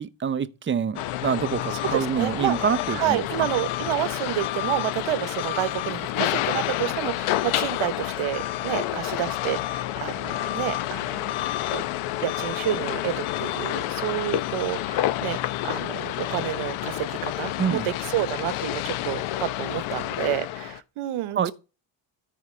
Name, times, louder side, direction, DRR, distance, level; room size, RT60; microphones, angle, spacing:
voice 1, 0.0-3.5 17.6-17.8 21.3-21.5, right 7 dB, 25° right, 0.6 m, -26 dB
sound 1, 0.9-20.8, left 14 dB, 80° left, 0.8 m, -29 dB
voice 2, 1.9-2.6 2.9-11.3 11.7-11.8 12.2-15.4 15.6-21.5, right 14 dB, 75° right, 1.1 m, -29 dB
13.5 x 4.7 x 3.3 m
cardioid pair, 120°, 49 cm